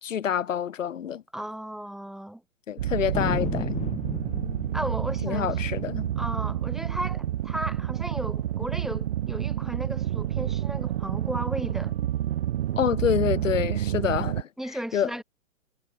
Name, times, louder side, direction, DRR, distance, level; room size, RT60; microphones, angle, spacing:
voice 1, 0.0-1.2 2.7-3.8 5.2-6.1 12.8-14.5 14.9-15.1, left 9 dB, 65° left, 2.0 m, -27 dB
voice 2, 1.3-2.4 4.7-5.8 6.2-11.9 14.6-15.2, right 1 dB, ahead, 2.6 m, -35 dB
sound 1, 2.8-14.4, right 12 dB, 45° right, 0.5 m, -29 dB
Thunder, 3.1-8.2 8.5-9.1 9.6-10.8, left 9 dB, 15° left, 6.0 m, -36 dB
hypercardioid pair, 130°, 41 cm